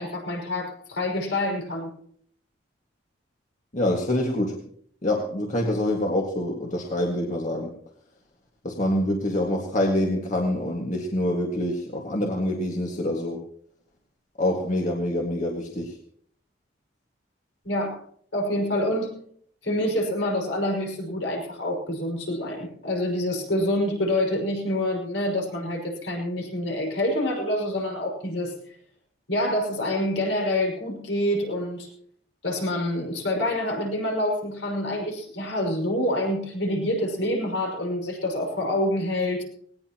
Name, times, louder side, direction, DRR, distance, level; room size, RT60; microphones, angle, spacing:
voice 1, 0.0-1.9 17.6-18.0 18.3-19.1 19.6-28.5 29.3-31.9 32.4-39.4, left 1 dB, 75° left, 0 dB, 5.8 m, -27 dB
voice 2, 3.7-4.6 5.0-7.7 8.6-13.4 14.4-16.0, left 1 dB, 40° left, 0 dB, 2.0 m, -26 dB
19.0 x 18.5 x 3.0 m, 0.63 s
head